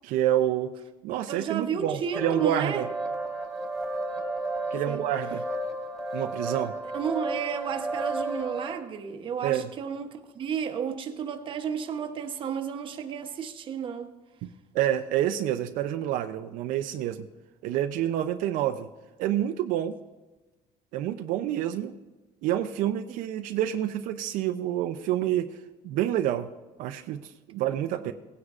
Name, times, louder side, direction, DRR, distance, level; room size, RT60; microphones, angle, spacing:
voice 1, 0.0-0.7 1.0-2.9 4.7-5.5 6.1-6.8 9.4-9.7 14.4-17.3 17.6-18.9 19.2-20.0 20.9-22.0 22.4-26.5 26.8-28.1, right 12 dB, 75° right, 0.5 m, -28 dB
voice 2, 1.3-2.8 4.9-5.0 6.9-14.1 28.0-28.1, right 7 dB, 40° right, 0.9 m, -32 dB
sound 1, 2.1-8.7, right 2 dB, ahead, 2.1 m, -33 dB
17.5 x 9.6 x 2.5 m
cardioid pair, 150°, 14 cm